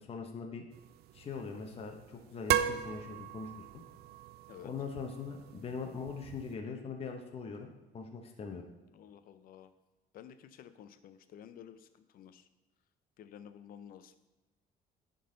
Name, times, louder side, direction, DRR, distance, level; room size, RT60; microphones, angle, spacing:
voice 1, 0.1-0.7 1.1-3.8 4.6-8.6, left 5 dB, 35° left, 3 dB, 0.9 m, -41 dB
sound 1, 0.7-6.5, right 11 dB, 70° right, 0.4 m, -38 dB
voice 2, 8.9-9.7 10.1-12.5 13.2-14.1, left 9 dB, 60° left, 11 dB, 0.5 m, -52 dB
10.5 x 3.9 x 3.9 m, 1.1 s
cardioid pair, 110°, 17 cm